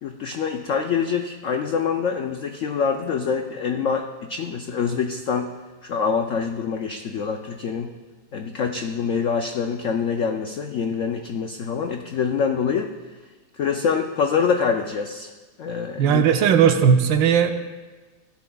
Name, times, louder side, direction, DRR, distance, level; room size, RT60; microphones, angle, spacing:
voice 1, 0.0-5.5 5.8-7.9 8.3-12.9 13.6-15.3 15.6-16.2, left 6 dB, 90° left, 4 dB, 0.6 m, -25 dB
voice 2, 16.0-17.5, right 7 dB, 80° right, 7 dB, 1.4 m, -17 dB
15.5 x 12.0 x 2.3 m, 1.3 s
omnidirectional pair, 2.1 m